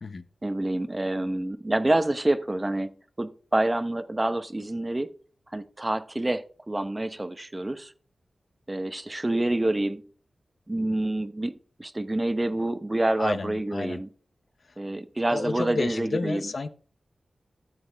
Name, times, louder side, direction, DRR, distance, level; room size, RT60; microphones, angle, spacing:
voice 1, 0.4-2.9 3.2-5.1 5.5-7.9 8.7-10.1 10.7-14.1 14.8-16.4, right 1 dB, 25° right, 0.8 m, -27 dB
voice 2, 13.2-14.0 14.6-14.8 15.3-16.7, left 3 dB, 65° left, 0.7 m, -31 dB
12.5 x 7.1 x 3.4 m
cardioid pair, 60°, 0 cm